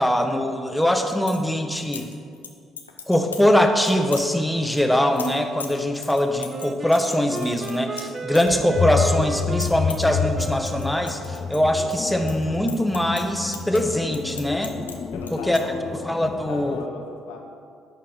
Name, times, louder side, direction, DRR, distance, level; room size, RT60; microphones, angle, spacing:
voice 1, 0.0-2.1 3.1-14.8 15.3-15.6 16.1-16.8, left 1 dB, 5° left, 5 dB, 1.0 m, -22 dB
sound 1, 0.8-1.4 1.8-2.5 2.8-3.5 3.8-4.3 4.7-9.1 9.3-10.1 10.4-11.9 12.2-15.0 15.2-15.6, left 6 dB, 90° left, 0.6 m, -38 dB
Wind instrument woodwind instrument, 6.5-11.6, right 3 dB, 35° right, 0.6 m, -35 dB
sound 2, 8.5-16.8, left 6 dB, 40° left, 0.5 m, -29 dB
voice 2, 15.1-16.0 16.3-17.4, left 4 dB, 75° left, 0 dB, 1.3 m, -37 dB
11.0 x 4.5 x 6.9 m, 2.2 s
figure-of-eight pair, 50°, 0 cm